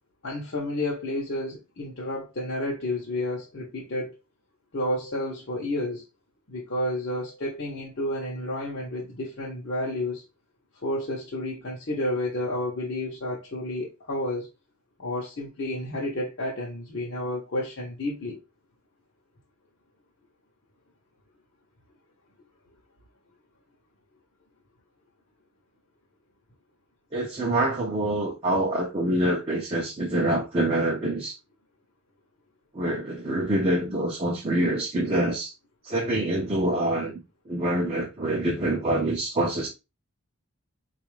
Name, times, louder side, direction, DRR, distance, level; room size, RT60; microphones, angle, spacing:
voice 1, 0.2-4.1 4.7-6.0 6.5-10.2 10.8-14.5 15.0-18.4, left 1 dB, 50° left, 0.7 m, -31 dB
voice 2, 27.1-31.3 32.7-35.5 35.8-37.1 37.5-39.7, right 1 dB, 25° right, 0.5 m, -26 dB
4.0 x 2.4 x 3.0 m
head